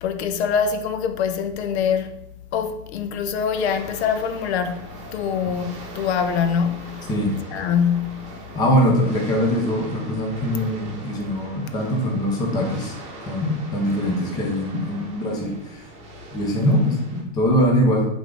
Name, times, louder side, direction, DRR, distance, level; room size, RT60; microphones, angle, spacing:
voice 1, 0.0-2.1 2.5-7.1 7.5-8.4, left 7 dB, 60° left, 0.6 m, -24 dB
sound 1, 3.5-17.2, right 2 dB, 20° right, 0.9 m, -40 dB
voice 2, 8.5-12.9 13.3-15.8 16.3-18.1, equal, 10° left, 0.5 m, -22 dB
8.5 x 3.5 x 3.8 m
supercardioid pair, 175°, 38 cm